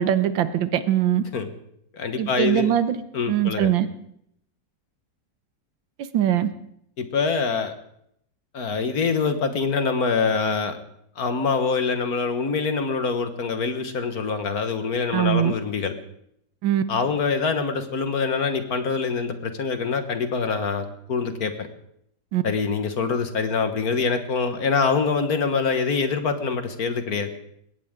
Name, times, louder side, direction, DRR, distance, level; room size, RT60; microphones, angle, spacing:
voice 1, 0.0-1.2 2.2-3.0 3.3-3.9 6.1-6.5 15.1-15.5 16.6-16.8 22.3-22.4, right 11 dB, 90° right, 12 dB, 1.7 m, -21 dB
voice 2, 1.9-2.7 3.1-3.7 7.0-7.7 8.5-10.8 11.2-15.9 16.9-21.7 22.4-27.3, left 5 dB, 55° left, 8 dB, 1.7 m, -25 dB
20.5 x 18.0 x 3.8 m, 0.72 s
omnidirectional pair, 2.0 m